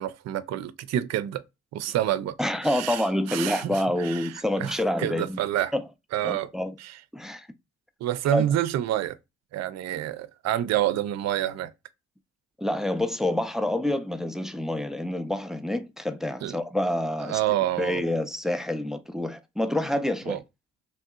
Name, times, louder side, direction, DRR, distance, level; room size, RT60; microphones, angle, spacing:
voice 1, 0.0-1.4 1.7-2.4 2.6-3.0 3.3-4.3 4.6-5.7 6.1-6.5 6.8-6.9 8.0-9.2 9.5-11.7 16.4-16.5 17.2-18.0 20.3-20.4, right 12 dB, 60° right, 0.4 m, -28 dB
voice 2, 2.4-5.4 5.7-5.8 6.2-6.8 7.1-7.5 8.3-8.4 12.6-17.4 17.8-20.4, left 1 dB, ahead, 0.4 m, -27 dB
3.2 x 2.7 x 2.2 m
supercardioid pair, 60°, 31 cm